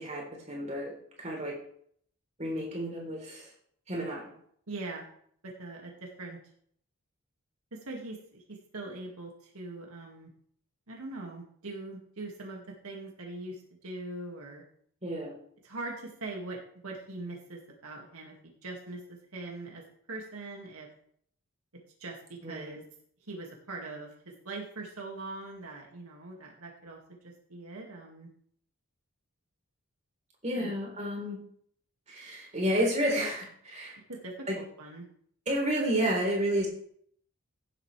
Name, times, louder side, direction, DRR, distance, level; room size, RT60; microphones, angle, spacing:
voice 1, 0.0-1.6 2.4-3.5 3.9-4.3 15.0-15.4 22.4-22.8 30.4-31.4 32.1-34.0 34.5-34.6 35.5-36.7, equal, 30° right, -1 dB, 3.6 m, -31 dB
voice 2, 4.7-5.1 5.4-6.4 7.7-10.3 10.9-14.6 15.6-19.8 20.1-20.9 22.0-22.8 23.3-28.3 30.6-30.7 34.1-35.1, right 2 dB, 80° right, -1 dB, 2.1 m, -42 dB
16.0 x 8.2 x 3.3 m, 0.63 s
head